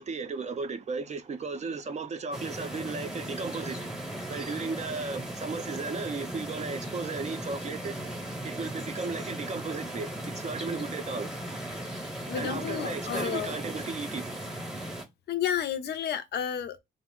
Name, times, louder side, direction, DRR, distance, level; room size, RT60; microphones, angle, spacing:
voice 1, 0.0-3.9 4.3-8.0 8.4-11.3 12.3-14.3, right 4 dB, 35° right, 0.4 m, -35 dB
sound 1, 2.3-15.0, right 1 dB, 5° right, 0.8 m, -37 dB
voice 2, 11.7-13.5 15.3-16.8, left 9 dB, 55° left, 0.4 m, -32 dB
2.3 x 2.0 x 3.6 m
cardioid pair, 90°, 20 cm